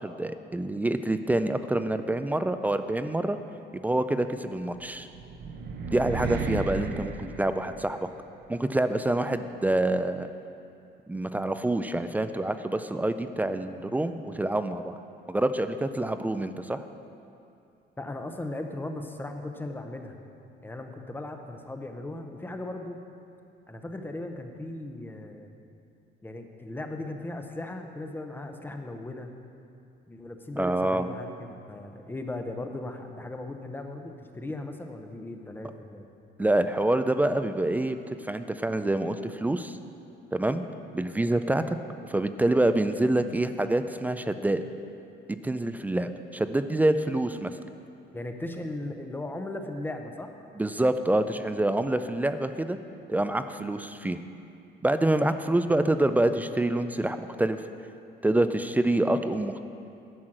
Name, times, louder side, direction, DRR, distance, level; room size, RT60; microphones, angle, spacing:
voice 1, 0.0-3.4 3.7-5.1 5.9-8.1 8.5-10.3 11.1-14.9 15.3-16.9 30.6-31.1 36.4-38.0 38.3-39.8 40.3-40.6 40.9-41.8 42.1-44.6 45.4-47.5 50.6-52.8 53.1-54.2 54.8-57.6 58.2-59.6, right 1 dB, 10° right, 10 dB, 0.3 m, -26 dB
sound 1, 4.8-8.2, right 4 dB, 60° right, 0.8 m, -34 dB
voice 2, 18.0-20.2 20.6-23.0 23.7-25.5 26.2-29.3 30.1-36.1 48.1-50.3, left 2 dB, 10° left, 5 dB, 0.7 m, -37 dB
11.0 x 6.3 x 7.6 m, 2.6 s
cardioid pair, 155°, 19 cm